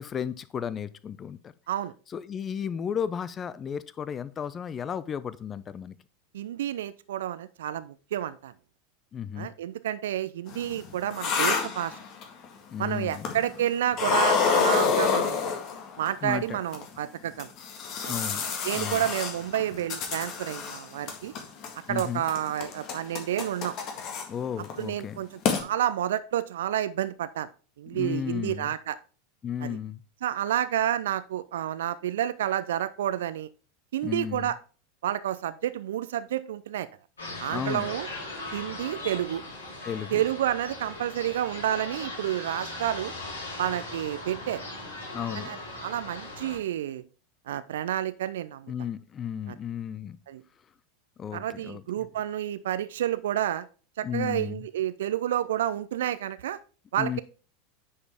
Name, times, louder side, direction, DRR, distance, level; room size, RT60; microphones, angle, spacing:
voice 1, 0.0-1.5 2.1-6.0 9.1-9.5 12.7-13.3 16.2-16.6 18.1-18.5 18.7-19.0 21.9-22.2 24.3-25.2 27.9-28.7 29.4-30.0 34.0-34.5 37.5-37.9 39.8-40.2 45.1-45.5 48.7-50.2 51.2-52.1 54.0-54.6 57.0-57.2, left 8 dB, 30° left, 17 dB, 0.5 m, -34 dB
voice 2, 6.3-8.5 9.4-12.0 12.8-15.6 16.0-17.5 18.0-18.1 18.6-21.3 21.9-23.8 24.8-27.5 27.8-29.0 29.6-29.8 30.2-33.5 33.9-34.6 35.0-36.9 37.4-38.1 38.5-39.4 40.1-43.1 43.6-44.6 45.3-47.0 47.5-48.7 49.5-49.6 50.3-50.4 51.3-53.7 54.0-56.6 56.9-57.2, right 11 dB, 65° right, 15 dB, 0.4 m, -30 dB
sound 1, 10.5-12.4 13.1-13.6 13.9-16.1 16.7-16.8 17.4-20.8 21.1-21.7 22.0-24.2 24.6-24.8 25.1-25.2 25.4-25.6, left 6 dB, 45° left, 1.7 m, -28 dB
sound 2, 37.2-46.6, left 2 dB, 80° left, 3.0 m, -39 dB
9.7 x 5.2 x 3.5 m, 0.38 s
figure-of-eight pair, 85°, 0 cm